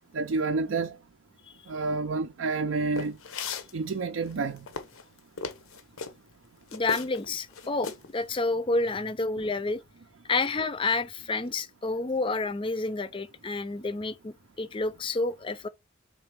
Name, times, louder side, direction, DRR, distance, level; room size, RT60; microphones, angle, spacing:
voice 1, 0.1-1.0 1.7-3.2 3.7-4.7, right 3 dB, 70° right, 0.5 m, -29 dB
sound 1, 3.0-3.7 4.3-6.1 6.7-7.3 7.5-8.1, left 5 dB, 85° left, 0.8 m, -36 dB
voice 2, 6.7-9.8 10.3-15.7, left 3 dB, 25° left, 0.4 m, -29 dB
4.3 x 3.3 x 3.2 m
head